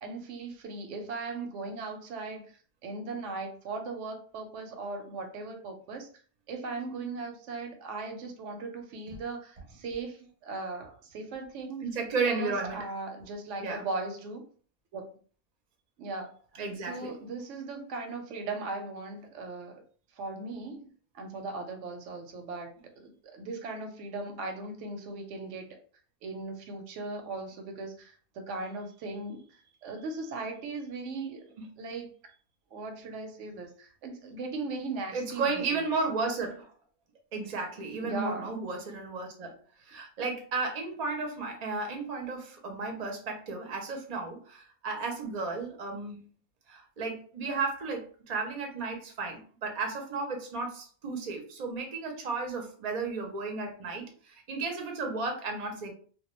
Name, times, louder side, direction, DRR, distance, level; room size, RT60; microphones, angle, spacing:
voice 1, 0.0-6.1 6.5-11.9 12.3-14.4 14.9-15.1 16.0-16.3 16.8-19.8 20.1-25.7 26.2-31.5 31.8-32.1 32.7-35.9 38.0-38.5, right 3 dB, 80° right, 5 dB, 0.9 m, -38 dB
voice 2, 11.8-12.9 13.6-13.8 16.6-17.1 31.6-31.7 35.1-36.7 37.3-46.3 46.7-55.9, right 4 dB, 45° right, 3 dB, 0.6 m, -34 dB
2.2 x 2.2 x 3.0 m, 0.43 s
omnidirectional pair, 1.2 m